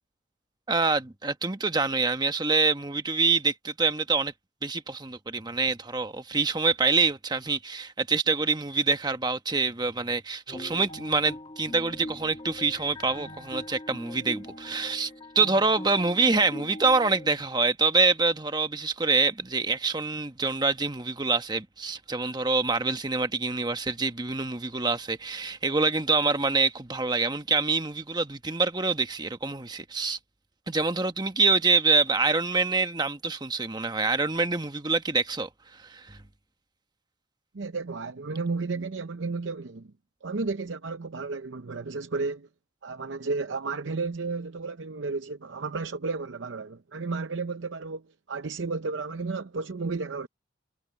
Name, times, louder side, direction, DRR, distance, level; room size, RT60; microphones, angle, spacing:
voice 1, 0.7-4.3 4.6-15.1 15.3-30.2 30.7-35.5 35.8-36.2, right 4 dB, 20° right, 1.2 m, -26 dB
sound 1, 10.5-17.3, left 1 dB, 25° left, 1.6 m, -42 dB
voice 2, 37.5-39.9 40.2-42.5 42.8-50.3, right 4 dB, 75° right, 0.7 m, -33 dB
head